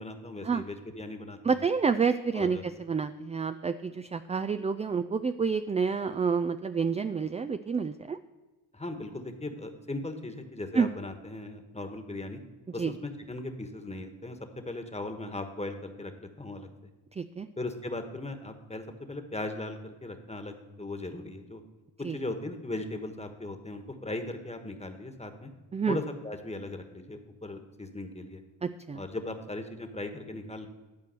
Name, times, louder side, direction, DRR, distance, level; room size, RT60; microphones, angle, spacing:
voice 1, 0.0-1.6 2.3-2.6 8.7-12.4 12.7-14.4 14.6-16.7 17.6-21.6 22.1-25.5 25.9-28.4 28.9-30.7, left 2 dB, 15° left, 6 dB, 1.3 m, -38 dB
voice 2, 1.4-8.2 10.7-10.9 12.8-12.9 17.2-17.5 22.0-22.2 25.7-26.0 28.6-29.0, right 5 dB, 15° right, 11 dB, 0.3 m, -29 dB
12.0 x 4.5 x 7.7 m, 1.2 s
supercardioid pair, 60°, 44 cm